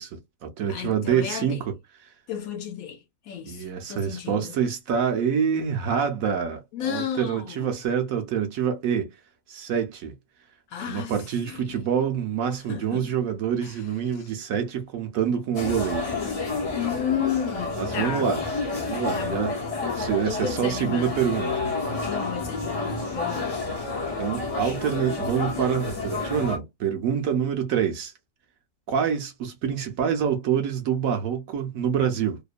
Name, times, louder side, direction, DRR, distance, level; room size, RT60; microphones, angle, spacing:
voice 1, 0.0-1.7 2.0-2.1 3.5-9.1 9.5-10.1 10.9-16.1 17.8-18.4 18.8-19.6 20.0-21.5 24.2-28.1 28.9-32.4, right 8 dB, 65° right, 0.9 m, -26 dB
voice 2, 0.7-1.7 2.3-4.7 6.7-7.7 10.7-11.2 11.5-11.8 12.5-13.1 13.6-13.8 14.1-14.3 16.7-18.4 19.1-19.5 19.8-21.2 22.1-23.6, left 8 dB, 70° left, 0.9 m, -33 dB
sound 1, 15.5-26.6, left 3 dB, 45° left, 0.5 m, -30 dB
2.9 x 2.1 x 2.4 m
omnidirectional pair, 1.7 m